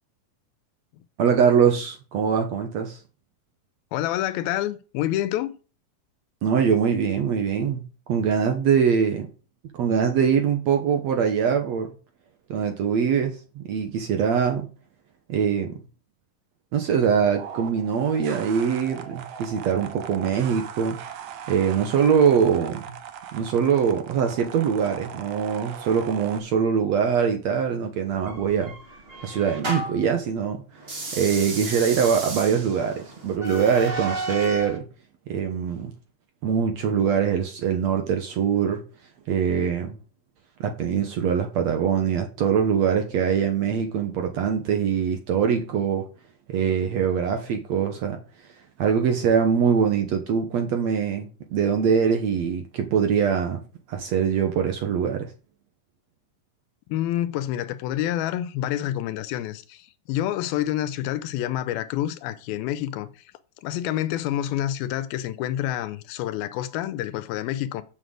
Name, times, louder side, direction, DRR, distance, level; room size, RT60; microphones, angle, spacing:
voice 1, 1.2-3.0 6.4-7.8 8.1-9.3 9.7-11.9 12.5-14.7 15.3-15.8 16.7-21.0 21.5-22.8 23.3-28.7 29.2-30.6 31.1-34.8 35.3-35.9 36.4-38.8 39.3-39.9 40.6-46.1 46.5-48.2 48.8-53.6 53.9-55.3, right 7 dB, 65° right, 1.8 m, -23 dB
voice 2, 3.9-5.6 56.9-63.1 63.6-67.8, left 12 dB, 85° left, 2.6 m, -28 dB
sound 1, 17.4-26.4, right 9 dB, 85° right, 1.3 m, -39 dB
sound 2, 28.3-30.1 30.8-34.8, right 2 dB, 30° right, 1.1 m, -33 dB
7.5 x 6.5 x 7.7 m
omnidirectional pair, 4.2 m